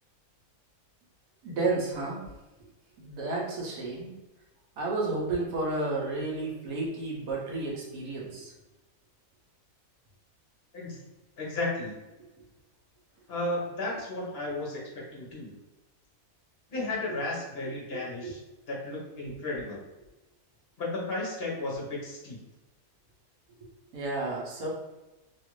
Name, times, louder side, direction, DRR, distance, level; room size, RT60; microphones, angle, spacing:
voice 1, 1.4-2.2 3.0-4.1 4.8-8.5 18.2-18.3 23.9-24.7, right 2 dB, 75° right, -2 dB, 1.2 m, -31 dB
voice 2, 11.4-12.0 13.3-15.5 16.7-18.4 18.7-19.8 20.8-22.4, left 2 dB, 50° left, -4 dB, 1.0 m, -34 dB
3.0 x 2.4 x 3.0 m, 1.0 s
omnidirectional pair, 1.5 m